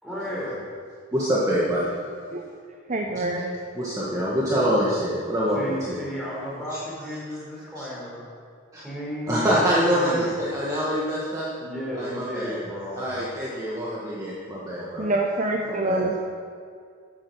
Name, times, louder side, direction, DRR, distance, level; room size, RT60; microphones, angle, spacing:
voice 1, 0.0-0.6 1.5-1.6 5.5-8.2 8.8-9.6 9.8-10.4 11.6-13.0 14.7-15.1, equal, ahead, -6 dB, 4.0 m, -34 dB
voice 2, 1.1-1.9 3.8-6.0 6.7-6.8 7.8-7.9 8.7-8.8 9.3-11.5 12.0-12.6 13.0-15.1 15.7-16.1, equal, 15° right, -7 dB, 1.7 m, -25 dB
voice 3, 2.9-3.6 15.0-16.2, right 2 dB, 35° right, 1 dB, 0.8 m, -26 dB
14.0 x 8.6 x 6.3 m, 2.2 s
head